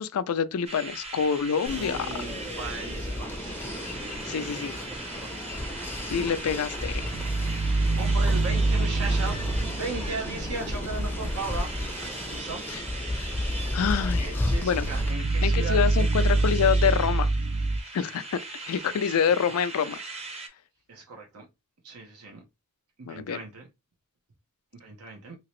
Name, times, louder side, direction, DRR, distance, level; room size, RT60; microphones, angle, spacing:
voice 1, 0.0-2.1 4.3-4.7 6.1-7.0 12.7-12.8 13.7-14.3 14.6-14.8 15.4-17.3 17.9-18.4 18.7-20.0 23.1-23.4, left 7 dB, 75° left, 0.4 m, -26 dB
sound 1, 0.7-20.5, right 3 dB, 25° right, 0.7 m, -40 dB
sound 2, 1.7-15.1, left 1 dB, 10° left, 0.5 m, -33 dB
voice 2, 1.7-4.0 5.2-5.6 8.0-11.7 12.3-12.7 13.8-16.8 18.2-18.3 19.0-19.1 20.9-21.5 21.8-22.4 23.0-23.7 24.8-25.4, right 3 dB, 85° right, 0.9 m, -38 dB
sound 3, 6.8-12.0 14.5-17.8, right 3 dB, 55° right, 0.3 m, -26 dB
2.9 x 2.9 x 3.0 m
head